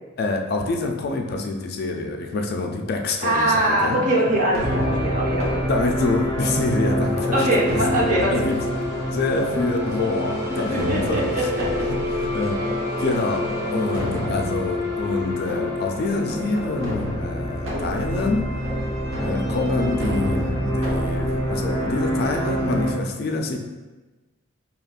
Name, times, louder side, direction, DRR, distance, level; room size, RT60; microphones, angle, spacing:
voice 1, 0.2-4.0 5.7-7.8 8.3-8.6 9.1-11.2 12.1-12.6 13.0-18.5 19.2-23.6, left 3 dB, 50° left, 3 dB, 0.3 m, -26 dB
voice 2, 3.2-5.6 7.3-8.5 10.5-11.9, right 1 dB, 40° right, -3 dB, 0.7 m, -22 dB
sound 1, 4.3-23.0, left 1 dB, 70° right, 0.9 m, -32 dB
sound 2, 4.6-22.9, equal, 15° right, 1.2 m, -27 dB
4.9 x 2.8 x 2.4 m, 1.2 s
head